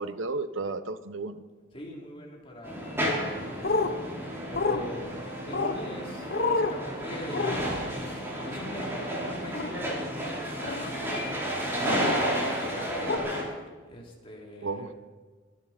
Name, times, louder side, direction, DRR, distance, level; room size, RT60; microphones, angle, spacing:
voice 1, 0.0-1.4 11.8-12.1 14.6-14.9, right 3 dB, 80° right, 12 dB, 0.9 m, -33 dB
voice 2, 1.7-3.9 4.5-5.2 5.5-12.0 12.4-13.3 13.9-15.0, equal, 30° left, -2 dB, 3.4 m, -41 dB
sound 1, 2.6-13.4, equal, 10° right, 4.5 m, -32 dB
sound 2, 3.6-3.9 4.5-4.8 5.5-5.8 6.3-6.7 7.3-7.5 9.5-9.7 10.6-10.9 12.1-12.3 13.1-13.2, left 3 dB, 50° left, 1.0 m, -27 dB
24.5 x 10.5 x 4.4 m, 1.4 s
head